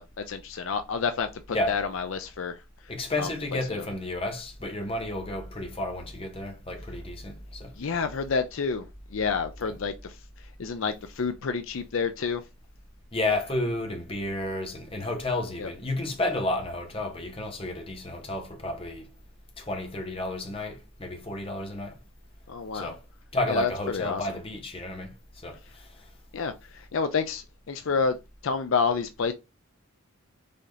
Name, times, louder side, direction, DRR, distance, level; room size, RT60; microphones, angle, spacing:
voice 1, 0.0-2.6 3.2-3.3 3.7-3.8 7.8-12.4 15.6-15.7 22.5-22.9 23.5-24.3 26.3-28.2 28.4-29.3, left 5 dB, 65° left, 0.5 m, -29 dB
voice 2, 2.9-7.8 13.1-19.1 19.6-22.0 22.7-23.0 23.3-26.1, left 2 dB, 25° left, 1.0 m, -32 dB
5.0 x 2.8 x 3.8 m
head